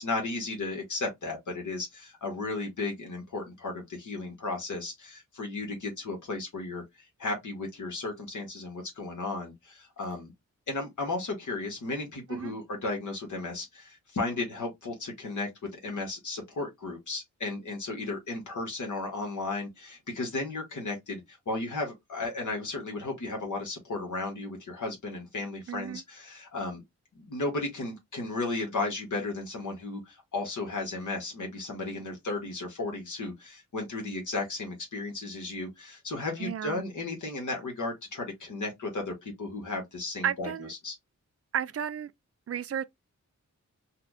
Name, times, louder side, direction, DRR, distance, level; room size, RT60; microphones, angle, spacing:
voice 1, 0.0-10.3 10.7-26.8 27.1-40.9, left 2 dB, 80° left, 1.3 m, -34 dB
voice 2, 25.7-26.0 36.4-36.8 40.2-40.7 41.5-42.1 42.5-42.8, right 8 dB, 50° right, 0.4 m, -32 dB
4.2 x 2.2 x 2.6 m
cardioid pair, 55°, 30 cm